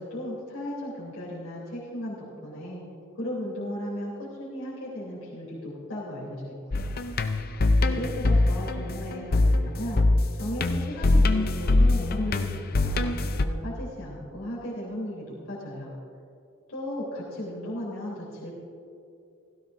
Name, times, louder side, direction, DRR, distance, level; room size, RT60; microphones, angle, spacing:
voice 1, 0.0-2.8 3.1-6.9 7.8-10.0 10.3-15.9 16.7-18.5, equal, 85° left, -7 dB, 3.3 m, -36 dB
sound 1, 6.7-13.4, left 2 dB, 45° left, 0.6 m, -23 dB
16.5 x 15.5 x 2.6 m, 2.6 s
head